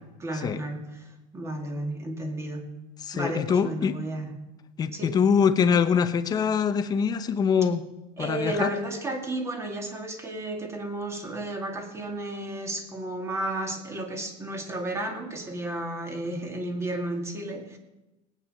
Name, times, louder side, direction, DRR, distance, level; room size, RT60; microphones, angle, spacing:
voice 1, 0.2-1.1 1.3-2.7 3.1-4.3 4.9-5.2 8.2-17.8, right 1 dB, 15° right, 5 dB, 2.0 m, -33 dB
voice 2, 3.1-4.0 4.8-7.8 8.2-8.7, left 6 dB, 25° left, 11 dB, 0.8 m, -23 dB
18.5 x 9.2 x 6.5 m, 1.0 s
cardioid pair, 165°, 17 cm